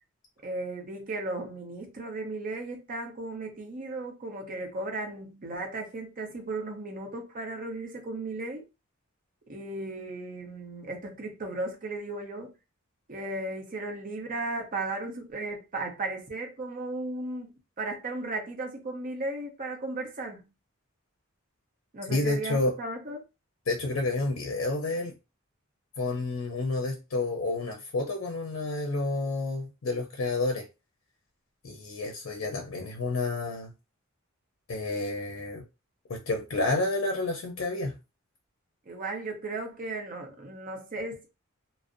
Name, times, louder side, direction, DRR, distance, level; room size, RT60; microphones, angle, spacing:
voice 1, 0.4-8.6 9.5-12.5 13.1-20.5 21.9-23.2 38.9-41.3, right 2 dB, 40° right, 0.6 m, -35 dB
voice 2, 22.1-22.7 23.7-25.1 26.0-30.7 31.6-33.7 34.7-35.6 36.1-38.0, left 2 dB, 70° left, 0.5 m, -30 dB
2.5 x 2.0 x 2.4 m
head